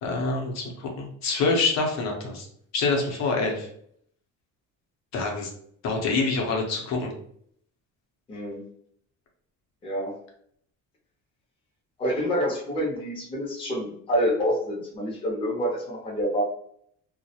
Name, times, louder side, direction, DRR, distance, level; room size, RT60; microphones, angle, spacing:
voice 1, 0.0-2.5 2.7-3.7 5.1-5.5 5.8-7.1, left 3 dB, 60° left, 0 dB, 0.6 m, -26 dB
voice 2, 8.3-8.7 9.8-10.2 12.0-16.4, equal, 15° left, -3 dB, 0.5 m, -27 dB
2.2 x 2.0 x 2.7 m, 0.66 s
cardioid pair, 165°, 31 cm